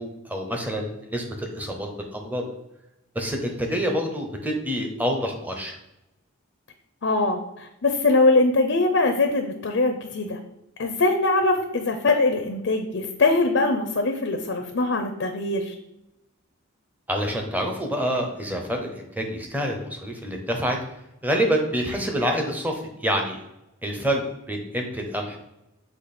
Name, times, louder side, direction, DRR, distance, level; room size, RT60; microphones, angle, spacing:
voice 1, 0.0-2.5 3.1-5.7 17.1-20.8 21.2-23.4 23.8-25.4, equal, 10° right, 2 dB, 0.8 m, -27 dB
voice 2, 7.0-10.4 10.8-15.7, left 2 dB, 55° left, 5 dB, 0.6 m, -22 dB
7.4 x 3.0 x 4.2 m, 0.91 s
head